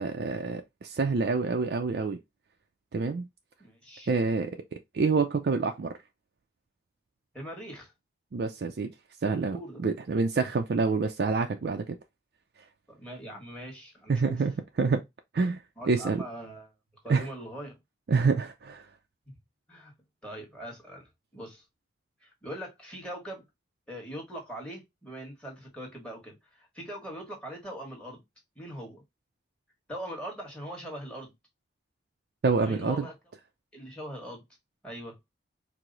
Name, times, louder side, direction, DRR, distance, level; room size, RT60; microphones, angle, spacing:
voice 1, 0.0-2.2 2.9-3.3 4.1-6.0 8.3-8.9 9.2-12.0 14.1-15.0 15.3-16.2 17.1-17.3 18.1-18.9 32.4-33.1, right 4 dB, 60° right, 0.4 m, -27 dB
voice 2, 3.6-4.1 7.3-7.9 9.5-9.8 12.9-14.4 15.8-16.7 17.0-17.8 19.7-19.9 20.2-21.6 22.2-23.5 23.9-28.2 28.5-29.0 29.9-31.3 32.6-33.1 33.7-34.4 34.8-35.2, right 1 dB, 5° left, 1.3 m, -41 dB
4.6 x 2.0 x 3.8 m
head